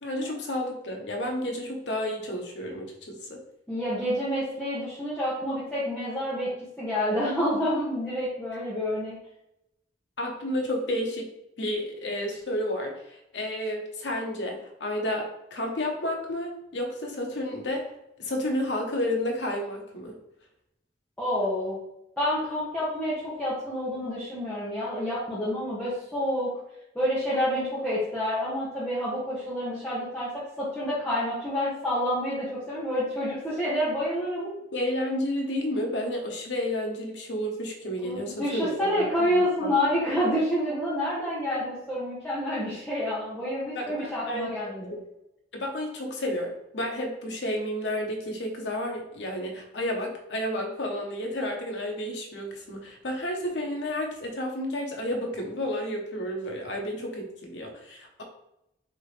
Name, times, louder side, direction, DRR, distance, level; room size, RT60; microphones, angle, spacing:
voice 1, 0.0-3.4 10.2-11.3 11.6-17.9 18.2-20.1 34.7-39.0 39.3-39.7 43.7-45.0 45.5-58.2, left 1 dB, 75° left, 2 dB, 0.9 m, -31 dB
voice 2, 3.7-6.5 6.8-9.2 21.2-21.8 22.2-26.5 26.9-30.3 30.6-34.5 38.0-44.9, equal, 5° left, -11 dB, 1.0 m, -28 dB
4.7 x 2.9 x 3.2 m, 0.83 s
head